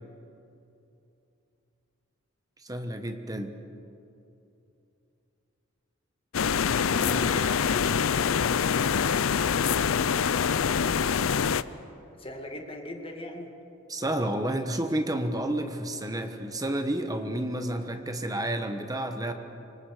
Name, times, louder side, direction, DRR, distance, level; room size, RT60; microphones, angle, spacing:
voice 1, 2.6-3.5 13.9-19.3, right 1 dB, 20° right, 7 dB, 1.2 m, -30 dB
sound 1, 6.3-11.6, left 7 dB, 85° left, 0.5 m, -25 dB
voice 2, 6.9-8.6 12.2-13.5, left 1 dB, 30° left, 3 dB, 2.2 m, -38 dB
26.5 x 24.5 x 5.0 m, 2.8 s
head